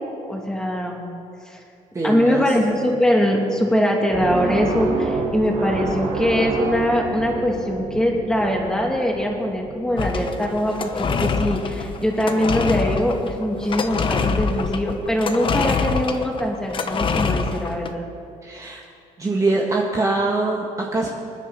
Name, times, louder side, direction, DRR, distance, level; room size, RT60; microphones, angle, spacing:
voice 1, 0.3-1.0 1.5-1.6 2.0-18.0, equal, 5° left, -1 dB, 2.6 m, -22 dB
voice 2, 1.9-2.5 18.4-18.8 19.2-21.1, right 2 dB, 25° right, -2 dB, 1.5 m, -23 dB
sound 1, 4.1-10.9, right 3 dB, 65° right, 2.9 m, -28 dB
sound 2, 10.0-17.9, left 5 dB, 40° left, 1.0 m, -25 dB
26.0 x 10.0 x 4.2 m, 2.5 s
cardioid pair, 115°, 14 cm